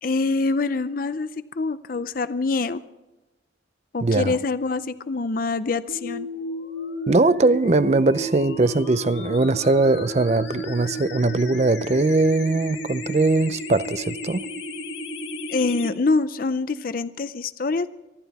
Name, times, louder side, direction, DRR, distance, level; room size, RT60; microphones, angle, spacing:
voice 1, 0.0-2.8 3.9-6.3 15.5-17.9, left 3 dB, 50° left, 0.5 m, -25 dB
voice 2, 4.0-4.4 7.1-14.5, right 3 dB, 35° right, 0.5 m, -20 dB
sound 1, 5.9-15.9, left 1 dB, 70° left, 2.1 m, -33 dB
24.0 x 12.5 x 4.1 m
head